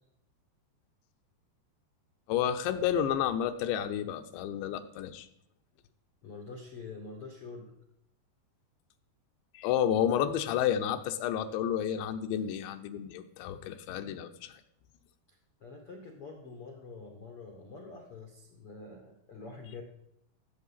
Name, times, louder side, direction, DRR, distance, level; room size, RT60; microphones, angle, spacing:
voice 1, 2.3-5.3 9.5-14.5, left 9 dB, 85° left, 9 dB, 3.1 m, -30 dB
voice 2, 6.2-7.7 15.3-19.8, left 3 dB, 70° left, 3 dB, 1.3 m, -46 dB
16.0 x 8.1 x 5.7 m, 0.76 s
omnidirectional pair, 5.0 m